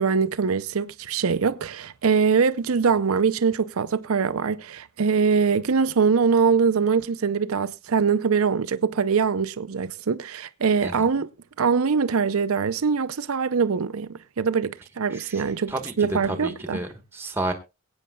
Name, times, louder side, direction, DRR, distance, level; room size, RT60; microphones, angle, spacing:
voice 1, 0.0-11.3 11.6-16.8, right 5 dB, 85° right, 0.6 m, -23 dB
voice 2, 15.1-17.5, right 1 dB, 10° right, 1.2 m, -32 dB
22.5 x 8.8 x 2.3 m
head